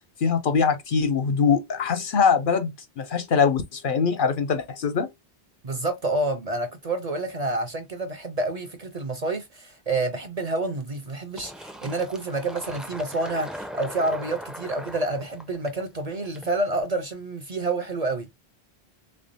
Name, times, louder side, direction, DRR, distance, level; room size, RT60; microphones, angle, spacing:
voice 1, 0.2-5.1, left 6 dB, 60° left, 0.6 m, -23 dB
voice 2, 5.6-18.3, right 2 dB, 45° right, 0.6 m, -28 dB
Fill (with liquid), 11.4-16.8, equal, ahead, 0.4 m, -40 dB
3.5 x 3.2 x 2.6 m
omnidirectional pair, 1.1 m